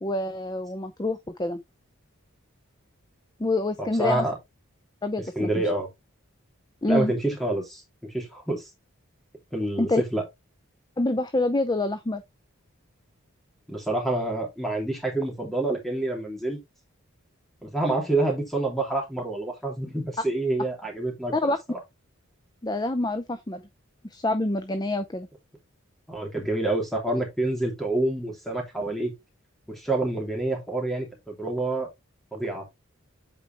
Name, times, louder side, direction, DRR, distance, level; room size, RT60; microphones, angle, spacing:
voice 1, 0.0-1.6 3.4-4.3 5.0-5.5 6.8-7.1 9.8-10.0 11.0-12.2 21.3-21.6 22.6-23.6 24.1-25.3, left 2 dB, 20° left, 0.5 m, -26 dB
voice 2, 3.8-4.4 5.4-5.9 6.9-8.7 9.5-10.2 13.7-16.6 17.6-21.3 26.1-29.1 29.7-31.9 32.3-32.6, right 2 dB, ahead, 2.8 m, -27 dB
8.4 x 4.6 x 3.3 m
head